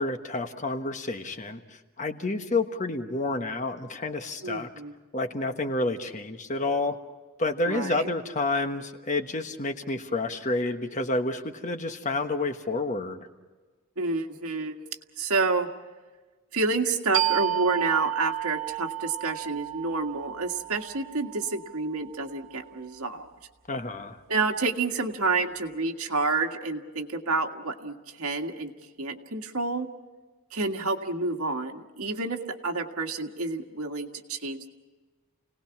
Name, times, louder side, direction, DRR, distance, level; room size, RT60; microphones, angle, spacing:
voice 1, 0.0-4.7 5.1-7.0 7.4-13.3 23.7-24.2, left 2 dB, 35° left, 6 dB, 1.2 m, -29 dB
voice 2, 4.4-4.9 7.7-8.1 14.0-14.8 15.2-15.7 16.5-23.3 24.3-28.7 29.0-29.9 30.5-34.7, right 3 dB, 85° right, 3 dB, 1.8 m, -29 dB
sound 1, 17.1-22.4, right 16 dB, 65° right, 1.8 m, -32 dB
29.5 x 18.5 x 6.0 m, 1.3 s
head